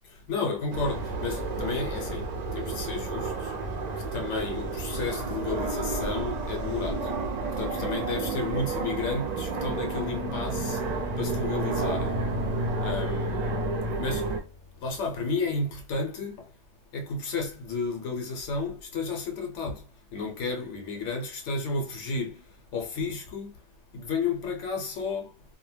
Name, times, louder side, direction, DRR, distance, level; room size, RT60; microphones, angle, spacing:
voice 1, 0.3-3.6 4.0-7.1 7.6-12.3 12.8-13.7 14.0-14.4 14.8-16.5 16.9-23.6 23.9-25.4, left 4 dB, 75° left, 0.9 m, -32 dB
sound 1, 0.7-14.4, right 3 dB, 60° right, 0.4 m, -31 dB
Acoustic guitar, 11.8-14.9, equal, 20° right, 0.9 m, -40 dB
2.1 x 2.1 x 3.1 m
omnidirectional pair, 1.3 m